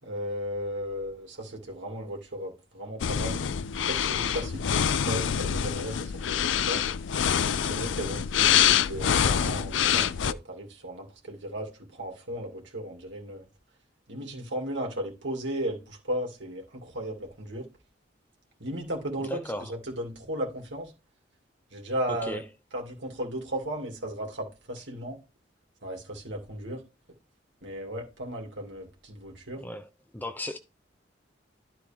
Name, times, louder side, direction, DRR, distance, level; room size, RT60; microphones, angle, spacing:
voice 1, 0.0-3.4 3.8-6.8 7.5-13.5 14.1-17.7 18.6-20.9 21.7-22.4 22.7-25.2 25.8-26.8 27.6-29.6, equal, 75° right, 2.6 m, -35 dB
sound 1, 3.0-10.3, left 8 dB, 80° left, 0.4 m, -25 dB
voice 2, 19.3-19.7 22.3-22.4 29.6-29.9 30.1-30.6, left 1 dB, 10° left, 0.5 m, -35 dB
12.0 x 4.4 x 3.5 m
head